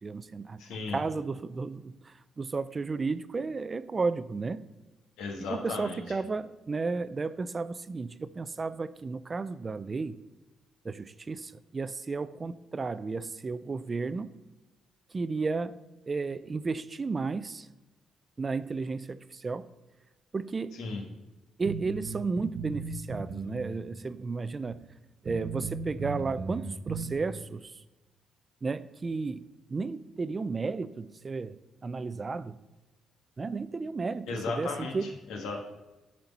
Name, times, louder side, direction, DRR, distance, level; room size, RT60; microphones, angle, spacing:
voice 1, 0.0-0.6 0.9-4.6 5.5-10.2 10.8-14.3 15.1-15.8 16.1-17.7 18.4-19.7 20.3-20.8 21.6-24.8 25.2-27.8 28.6-32.5 33.4-35.1, right 4 dB, 30° right, 15 dB, 0.4 m, -33 dB
voice 2, 0.6-1.0 5.2-6.0 20.7-21.0 34.3-35.6, left 4 dB, 90° left, 2 dB, 1.5 m, -35 dB
sound 1, 21.6-23.7 24.0-24.1 24.7-24.8 25.3-27.1, right 4 dB, 55° right, 0.8 m, -37 dB
10.5 x 4.4 x 5.4 m, 1.1 s
cardioid pair, 90°, 0 cm